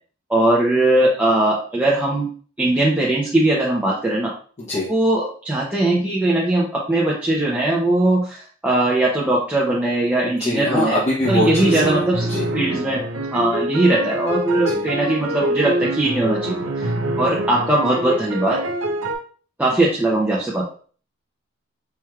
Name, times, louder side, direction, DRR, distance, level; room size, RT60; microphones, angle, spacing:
voice 1, 0.3-2.3 2.6-4.3 4.9-11.0 11.2-12.3 12.5-13.0 13.3-16.9 17.2-18.6 19.6-20.6, right 1 dB, 5° right, -5 dB, 0.6 m, -20 dB
voice 2, 4.6-4.9 10.2-12.5 14.7-14.9, left 1 dB, 35° left, -6 dB, 0.8 m, -23 dB
sound 1, 11.2-19.2, right 1 dB, 80° right, 0.6 m, -25 dB
4.5 x 3.1 x 2.3 m, 0.43 s
head